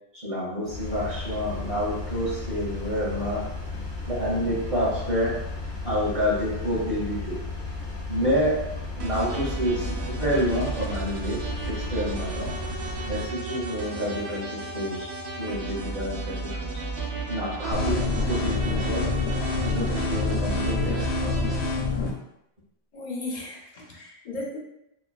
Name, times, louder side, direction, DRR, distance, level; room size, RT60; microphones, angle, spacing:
voice 1, 0.1-3.5 4.1-5.3 5.8-7.4 8.1-8.5 9.0-11.4 11.7-12.5 13.1-15.1 15.4-16.7 17.3-19.1 19.6-21.3, equal, 35° right, -10 dB, 1.1 m, -28 dB
Engine, 0.6-13.3, left 3 dB, 5° right, 1.1 m, -34 dB
sound 1, 9.0-21.7, right 4 dB, 80° right, 0.8 m, -33 dB
sound 2, 17.7-22.1, left 4 dB, 85° left, 0.9 m, -27 dB
voice 2, 22.9-24.6, left 2 dB, 50° left, -2 dB, 0.7 m, -35 dB
3.0 x 2.3 x 2.3 m, 0.81 s
omnidirectional pair, 1.1 m